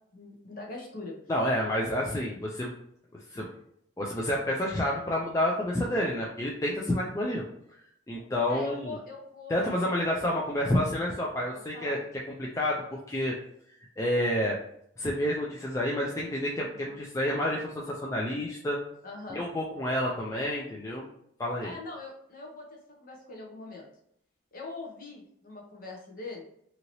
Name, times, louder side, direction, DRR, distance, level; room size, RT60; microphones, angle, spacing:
voice 1, 0.1-1.1 8.5-9.6 11.5-12.0 16.7-17.0 19.0-19.4 21.6-23.9 24.5-26.4, left 3 dB, 45° left, 0 dB, 0.7 m, -42 dB
voice 2, 1.3-2.7 3.3-3.5 4.0-7.4 8.1-8.9 9.5-12.0 12.4-12.8 13.1-13.4 14.0-14.6 15.0-18.8 19.3-21.1 21.4-21.7, left 1 dB, 15° left, -3 dB, 0.3 m, -29 dB
2.8 x 2.7 x 2.9 m, 0.71 s
head